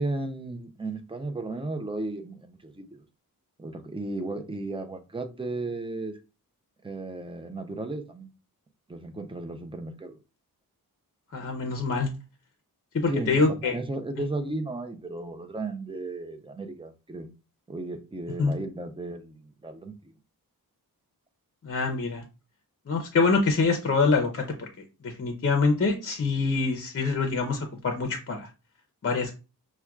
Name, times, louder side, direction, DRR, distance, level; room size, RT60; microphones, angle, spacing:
voice 1, 0.0-3.0 3.6-6.2 6.8-8.3 8.9-10.2 13.1-17.3 17.7-20.1, right 2 dB, 15° right, 0.5 m, -34 dB
voice 2, 11.3-12.1 12.9-13.8 18.4-18.5 21.6-22.2 22.9-24.7 25.0-28.5 29.0-29.4, left 4 dB, 40° left, 0.6 m, -25 dB
5.7 x 2.2 x 2.3 m
wide cardioid pair, 115°, 37 cm